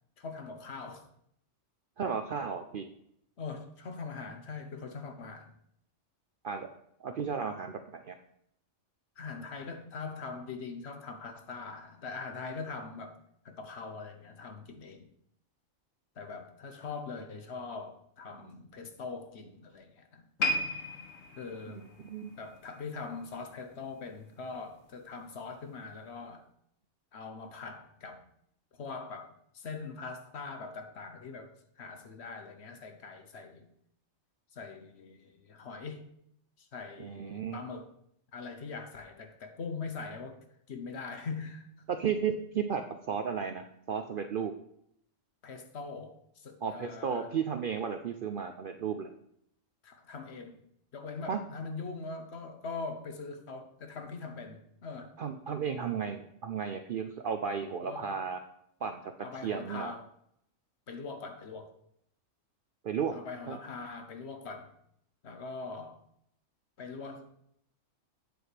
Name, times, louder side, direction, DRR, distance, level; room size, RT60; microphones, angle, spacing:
voice 1, 0.2-1.1 3.4-5.6 9.2-13.2 13.4-15.1 16.2-20.2 21.3-21.9 22.4-26.4 27.1-28.2 28.8-33.7 34.5-36.0 36.6-37.9 38.3-40.4 40.7-41.7 45.4-47.3 49.8-50.7 50.9-55.2 57.8-58.1 59.2-60.1 60.9-61.7 63.1-64.7 65.2-66.0 66.8-67.3, left 4 dB, 60° left, 6 dB, 1.1 m, -42 dB
voice 2, 2.0-2.9 6.4-6.7 7.0-8.2 22.0-22.3 37.0-37.6 42.0-42.8 43.1-44.5 46.6-49.1 51.3-51.4 55.2-58.4 58.8-59.1 59.4-59.9 62.8-63.1 63.5-63.6, right 7 dB, 60° right, 6 dB, 0.6 m, -34 dB
sound 1, 20.4-23.7 24.0-24.3 24.9-25.0, left 2 dB, 75° left, 1.5 m, -35 dB
8.1 x 7.8 x 3.3 m, 0.72 s
omnidirectional pair, 1.4 m